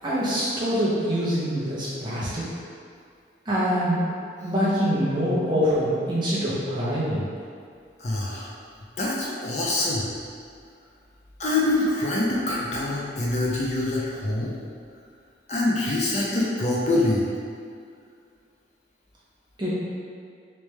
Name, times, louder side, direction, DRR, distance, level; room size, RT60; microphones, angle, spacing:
voice 1, 0.0-2.5 3.5-4.0 4.4-7.3 19.6-19.7, equal, 25° right, -9 dB, 0.9 m, -24 dB
voice 2, 8.0-8.5 9.0-10.1 11.4-14.5 15.5-17.2, left 2 dB, 40° left, -5 dB, 0.5 m, -25 dB
3.3 x 3.2 x 3.2 m, 2.3 s
head